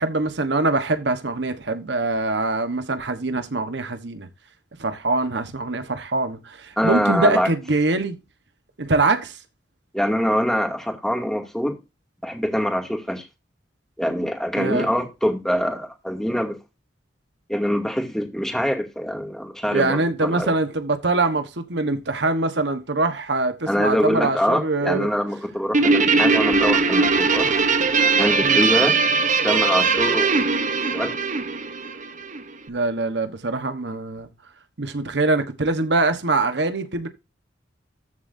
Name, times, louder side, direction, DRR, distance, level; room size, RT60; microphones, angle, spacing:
voice 1, 0.0-4.3 4.8-8.2 8.8-9.4 14.6-14.9 19.7-25.1 28.4-28.6 32.7-34.3 34.8-37.1, right 2 dB, 70° right, 1.2 m, -23 dB
voice 2, 6.8-7.5 9.9-11.7 12.2-13.2 14.0-16.6 17.5-20.5 23.7-27.7 28.1-29.0 29.4-30.4 30.9-31.1, equal, 5° left, 2.4 m, -24 dB
Guitar, 25.7-32.4, right 4 dB, 45° right, 0.9 m, -20 dB
14.0 x 7.5 x 2.7 m
head